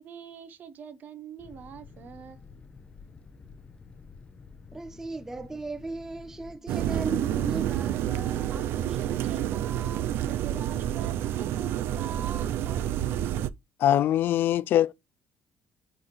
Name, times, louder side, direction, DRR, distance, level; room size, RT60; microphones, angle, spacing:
voice 1, 0.0-2.5 8.5-12.9, right 8 dB, 45° right, 1.1 m, -43 dB
sound 1, 1.4-6.6, left 4 dB, 25° left, 0.8 m, -50 dB
voice 2, 4.7-9.2, right 3 dB, 10° right, 0.5 m, -37 dB
sound 2, 6.7-13.5, right 11 dB, 70° right, 0.5 m, -29 dB
voice 3, 13.8-14.9, left 11 dB, 55° left, 0.3 m, -22 dB
9.7 x 4.1 x 3.2 m
cardioid pair, 155°, 4 cm